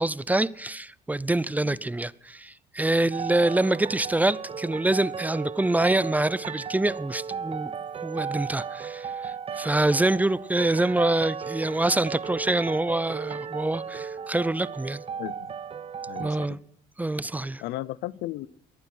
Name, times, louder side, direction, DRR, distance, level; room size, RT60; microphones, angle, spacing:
voice 1, 0.0-7.7 8.0-15.0 16.2-16.6 17.0-17.6, right 2 dB, 10° right, 0.6 m, -26 dB
sound 1, 3.1-16.5, right 6 dB, 35° right, 0.9 m, -35 dB
voice 2, 15.2-15.5 16.1-16.6 17.6-18.5, left 16 dB, 85° left, 0.6 m, -35 dB
21.5 x 9.5 x 6.1 m
cardioid pair, 110°, 17 cm